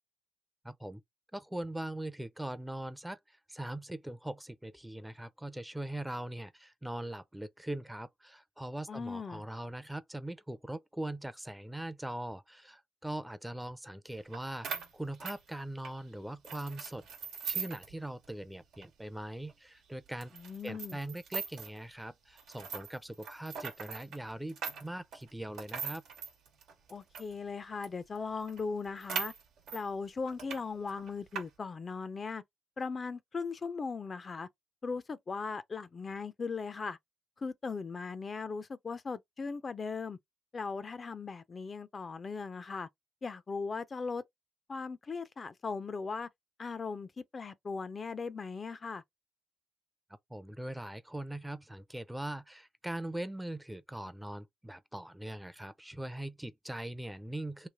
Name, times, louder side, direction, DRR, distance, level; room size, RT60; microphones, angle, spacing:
voice 1, 0.6-1.0 1.3-17.0 17.4-20.3 20.6-26.0 50.3-57.7, right 1 dB, 10° right, 0.5 m, -41 dB
voice 2, 8.9-9.4 20.3-21.0 26.9-29.3 29.7-32.4 32.8-34.5 34.8-37.0 37.4-40.2 40.5-42.9 43.2-44.2 44.7-46.3 46.6-49.0, left 4 dB, 45° left, 0.4 m, -38 dB
sound 1, 14.3-14.4 14.6-16.0 16.4-17.9 18.2-18.3 18.7-18.8 19.4-19.5 20.2-21.8 22.4-27.3 27.8-27.9 28.2-28.3 28.5-29.8 30.3-30.6 30.9-31.4, right 6 dB, 90° right, 1.1 m, -40 dB
3.2 x 2.4 x 3.5 m
cardioid pair, 65°, 0 cm